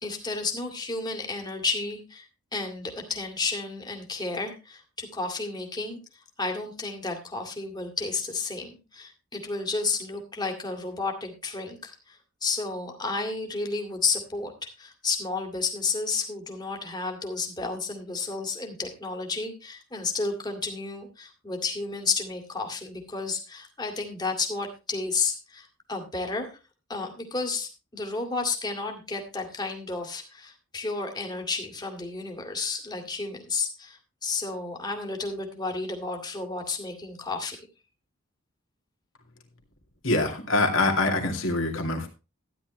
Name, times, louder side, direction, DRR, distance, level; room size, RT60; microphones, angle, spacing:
voice 1, 0.0-6.0 6.4-26.6 26.9-37.6, left 4 dB, 20° left, 2 dB, 2.1 m, -32 dB
voice 2, 40.0-42.1, left 2 dB, 65° left, 3 dB, 2.4 m, -24 dB
13.0 x 10.5 x 3.2 m, 0.30 s
head